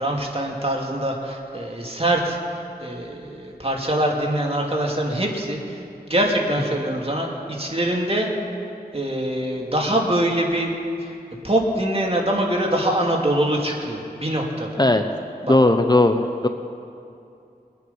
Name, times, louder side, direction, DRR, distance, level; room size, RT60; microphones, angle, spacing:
voice 1, 0.0-2.4 2.8-5.8 6.1-8.3 8.9-10.7 11.0-11.1 11.4-14.7 15.4-15.5, right 1 dB, 35° right, -1 dB, 2.5 m, -23 dB
voice 2, 15.5-16.5, left 2 dB, 25° left, 6 dB, 0.7 m, -17 dB
23.5 x 9.3 x 5.6 m, 2.6 s
wide cardioid pair, 40°, 16 cm